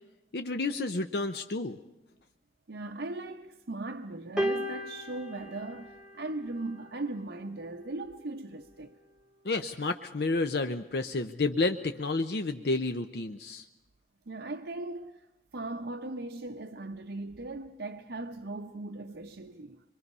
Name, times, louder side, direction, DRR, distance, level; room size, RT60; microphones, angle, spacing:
voice 1, 0.3-1.8 9.4-13.7, left 3 dB, 65° left, 0.7 m, -30 dB
voice 2, 2.7-8.9 14.3-15.3 15.5-19.8, right 2 dB, 80° right, 0.8 m, -38 dB
sound 1, 4.4-6.8 7.9-8.0, equal, 5° right, 1.1 m, -35 dB
25.0 x 23.0 x 5.5 m
head